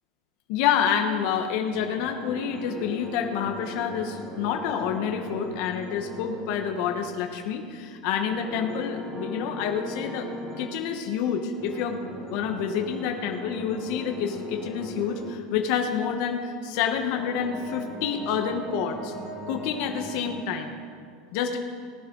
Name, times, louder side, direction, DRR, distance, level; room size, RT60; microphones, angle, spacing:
voice 1, 0.5-10.3 10.6-19.1 19.5-20.8 21.3-21.6, left 7 dB, 50° left, 4 dB, 1.1 m, -28 dB
sound 1, 1.3-7.4 8.2-10.8 11.5-15.3 16.7-20.4, equal, 15° right, 2.3 m, -39 dB
18.5 x 9.7 x 3.9 m, 2.2 s
supercardioid pair, 160°, 3 cm